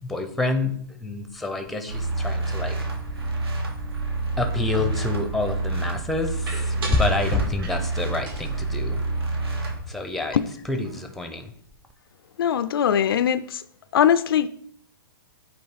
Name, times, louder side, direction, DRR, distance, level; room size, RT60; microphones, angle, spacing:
voice 1, 0.0-2.8 4.4-9.0 9.9-10.4 10.7-11.5, left 2 dB, ahead, 0.6 m, -27 dB
sound 1, 1.9-9.8, right 2 dB, 85° right, 1.7 m, -28 dB
sound 2, 4.7-5.3 6.5-8.0 8.3-10.0 10.3-10.4 10.7-11.2, right 2 dB, 65° right, 2.4 m, -39 dB
voice 2, 12.4-13.6 13.9-14.5, left 9 dB, 70° left, 0.4 m, -21 dB
8.6 x 3.2 x 4.1 m
hypercardioid pair, 135°, 13 cm